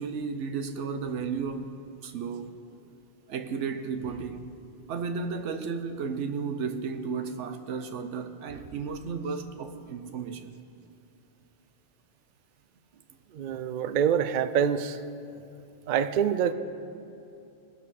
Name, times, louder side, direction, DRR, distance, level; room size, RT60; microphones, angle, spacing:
voice 1, 0.0-2.6 3.3-4.5 4.9-10.5, right 5 dB, 85° right, 1.1 m, -34 dB
voice 2, 13.3-15.0 15.9-16.5, right 8 dB, 60° right, 0.5 m, -25 dB
20.5 x 7.0 x 4.2 m
omnidirectional pair, 1.2 m